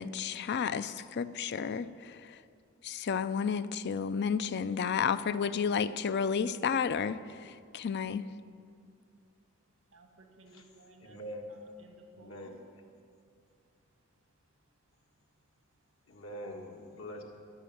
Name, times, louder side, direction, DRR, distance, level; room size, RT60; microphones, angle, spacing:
voice 1, 0.0-2.3 2.8-8.3, left 6 dB, 55° left, 14 dB, 0.4 m, -32 dB
voice 2, 9.9-11.2 11.5-12.6, right 2 dB, 80° right, 4 dB, 1.8 m, -58 dB
voice 3, 11.0-11.6 12.1-12.6 16.1-17.2, equal, 85° left, 1 dB, 1.8 m, -43 dB
13.5 x 6.3 x 9.6 m, 2.3 s
head